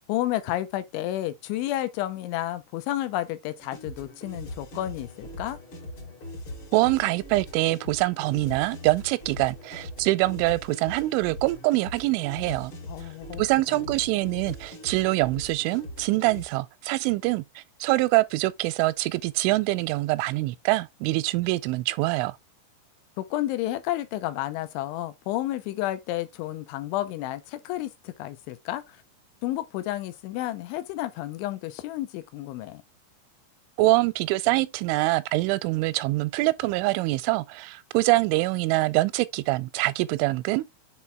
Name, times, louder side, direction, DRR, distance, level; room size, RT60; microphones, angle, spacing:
voice 1, 0.1-5.6 12.9-13.4 13.7-13.9 23.2-29.0 29.4-32.8, left 14 dB, 90° left, 3.2 m, -31 dB
sound 1, 3.6-16.4, left 1 dB, 40° left, 2.2 m, -41 dB
voice 2, 6.7-12.7 13.4-22.4 33.8-40.7, right 20 dB, 90° right, 3.0 m, -24 dB
7.0 x 4.4 x 3.4 m
omnidirectional pair, 5.4 m